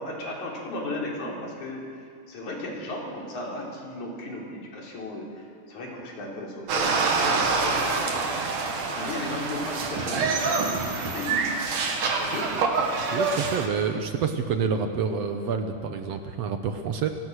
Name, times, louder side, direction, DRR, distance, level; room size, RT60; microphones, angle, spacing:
voice 1, 0.0-8.6 9.0-11.5 12.0-12.6, left 1 dB, 70° left, -1 dB, 5.1 m, -35 dB
sound 1, 6.7-13.7, right 4 dB, 80° right, 3.6 m, -26 dB
voice 2, 13.1-17.1, right 6 dB, 65° right, 7 dB, 1.9 m, -28 dB
28.5 x 18.5 x 6.4 m, 2.3 s
omnidirectional pair, 3.5 m